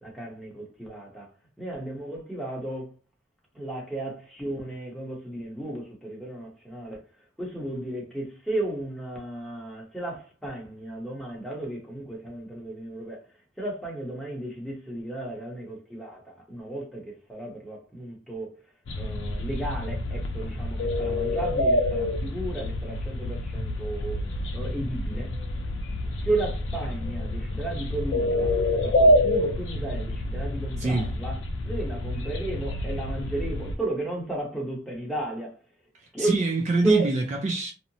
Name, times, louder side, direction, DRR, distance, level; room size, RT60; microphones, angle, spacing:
voice 1, 0.0-1.3 1.6-3.0 3.5-24.3 24.5-25.3 26.2-28.5 28.8-31.4 31.6-35.6 36.1-36.4 36.8-37.1, right 2 dB, ahead, 0.8 m, -33 dB
sound 1, 18.9-33.8, left 1 dB, 85° left, 0.5 m, -27 dB
voice 2, 30.8-31.1 35.9-37.7, right 2 dB, 40° right, 0.3 m, -26 dB
2.8 x 2.0 x 2.6 m
head